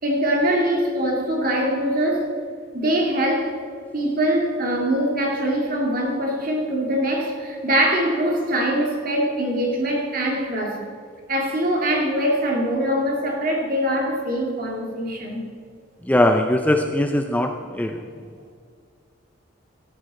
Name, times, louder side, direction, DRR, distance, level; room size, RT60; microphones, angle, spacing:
voice 1, 0.0-2.3 2.7-3.5 3.9-10.8 11.3-15.5, right 1 dB, 45° right, 2.1 m, -23 dB
voice 2, 16.0-18.0, left 1 dB, 5° left, 0.4 m, -20 dB
14.5 x 10.0 x 4.2 m
head